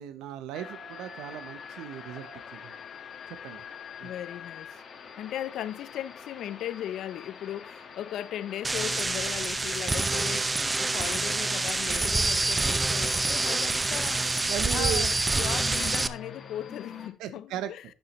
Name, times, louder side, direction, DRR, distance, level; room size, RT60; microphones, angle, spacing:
voice 1, 0.0-2.7 3.3-3.6 4.0-4.1 14.3-15.1 17.2-17.7, right 11 dB, 90° right, 0.7 m, -37 dB
sound 1, 0.5-17.1, left 6 dB, 45° left, 1.5 m, -45 dB
voice 2, 4.0-4.8 5.2-14.3 14.7-17.8, left 11 dB, 65° left, 0.5 m, -37 dB
sound 2, 8.6-16.1, right 3 dB, 15° right, 0.5 m, -27 dB
11.0 x 7.0 x 3.0 m
cardioid pair, 125°, 0 cm